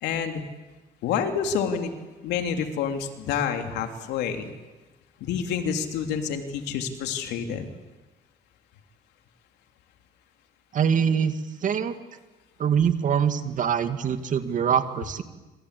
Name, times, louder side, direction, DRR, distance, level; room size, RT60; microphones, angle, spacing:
voice 1, 0.0-0.4 1.0-1.9 2.2-4.5 5.2-7.7, left 7 dB, 85° left, 5 dB, 3.3 m, -28 dB
voice 2, 10.7-11.3 11.6-11.9 12.6-15.2, right 7 dB, 50° right, 9 dB, 2.2 m, -23 dB
26.5 x 26.0 x 8.5 m, 1.2 s
cardioid pair, 110°, 17 cm